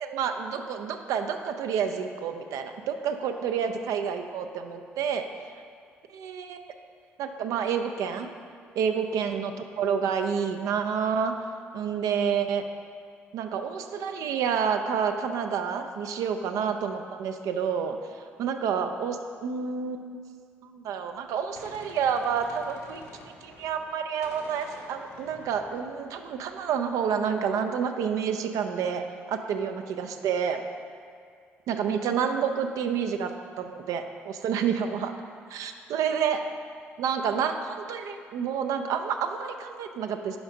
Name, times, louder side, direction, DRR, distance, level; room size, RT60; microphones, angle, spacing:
voice 1, 0.0-5.2 6.1-6.6 7.2-8.3 8.8-9.5 9.8-11.3 11.7-12.7 13.3-18.0 18.4-20.2 20.6-23.0 23.4-29.0 29.3-30.6 31.7-33.3 33.6-35.1 35.5-36.5 37.0-40.4, right 7 dB, 65° right, 7 dB, 0.4 m, -29 dB
Gunshot gunfire, 21.1-24.0 24.2-26.9, left 2 dB, 65° left, 0.9 m, -50 dB
5.0 x 5.0 x 4.9 m, 2.2 s
figure-of-eight pair, 45°, 6 cm